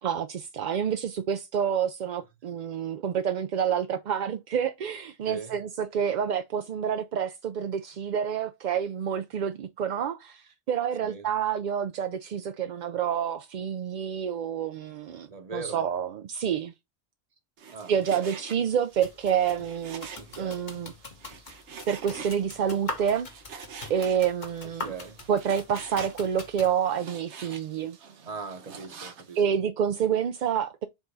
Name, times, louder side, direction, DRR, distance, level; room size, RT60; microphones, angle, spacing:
voice 1, 0.0-16.7 17.9-20.1 20.4-20.9 21.9-24.9 25.3-28.0 29.4-30.9, right 8 dB, 60° right, 0.5 m, -28 dB
voice 2, 5.3-5.6 11.0-11.3 15.3-15.8 17.7-18.3 20.2-20.7 24.6-25.3 28.2-29.4, right 4 dB, 35° right, 1.0 m, -40 dB
Frying (food), 17.6-29.4, right 6 dB, 90° right, 1.2 m, -46 dB
sound 1, 18.9-26.7, left 3 dB, 45° left, 1.2 m, -42 dB
4.8 x 3.8 x 5.3 m
omnidirectional pair, 1.1 m